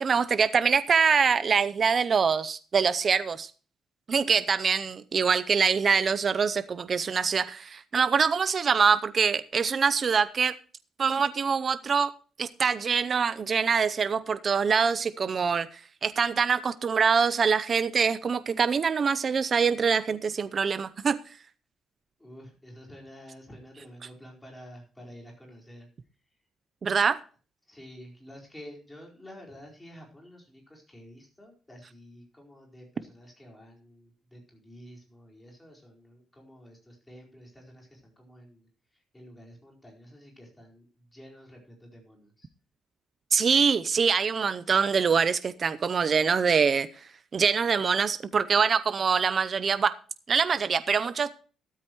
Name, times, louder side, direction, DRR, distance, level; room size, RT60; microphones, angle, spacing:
voice 1, 0.0-3.5 4.1-10.5 11.0-12.1 12.4-21.2 26.8-27.2 43.3-46.9 47.3-49.9 50.3-51.3, right 6 dB, 35° right, 13 dB, 0.6 m, -24 dB
voice 2, 22.2-25.9 27.7-42.5, equal, 10° left, -1 dB, 4.5 m, -50 dB
13.0 x 13.0 x 3.1 m, 0.39 s
cardioid pair, 155°, 0 cm